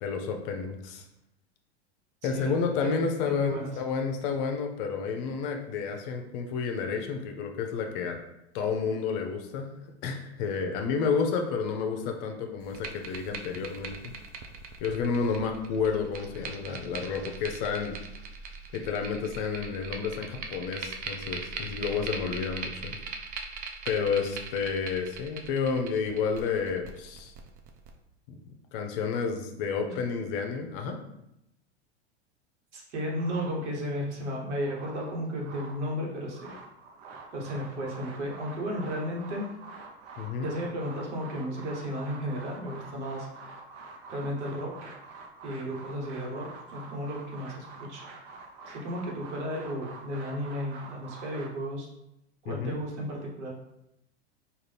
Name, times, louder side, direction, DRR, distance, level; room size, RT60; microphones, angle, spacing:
voice 1, 0.0-1.0 2.2-8.2 8.5-9.7 10.0-14.1 14.8-18.0 18.7-23.0 23.8-27.3 28.3-31.0 40.2-40.5 52.5-52.8, left 5 dB, 50° left, 4 dB, 0.7 m, -30 dB
voice 2, 3.2-3.7 29.8-30.0 32.7-36.5 37.3-39.5 40.4-43.3 44.1-44.9 45.4-48.0 48.7-51.9 52.4-53.5, equal, 80° right, -2 dB, 1.2 m, -34 dB
sound 1, 12.6-27.9, right 4 dB, 25° right, 0.4 m, -40 dB
sound 2, 33.1-34.0 34.5-35.8 36.2-51.5, right 3 dB, 60° right, 0.7 m, -46 dB
3.8 x 2.5 x 3.3 m, 0.86 s
hypercardioid pair, 105°, 35 cm